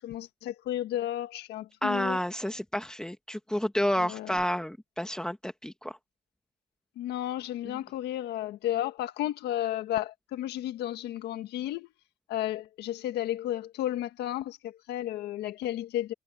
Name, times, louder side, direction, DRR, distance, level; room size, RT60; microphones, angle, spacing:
voice 1, 0.0-2.2 4.0-4.4 7.0-11.9 12.3-16.1, left 12 dB, 75° left, 1.6 m, -33 dB
voice 2, 1.8-6.0, equal, 5° left, 1.6 m, -30 dB
cardioid pair, 110°, 17 cm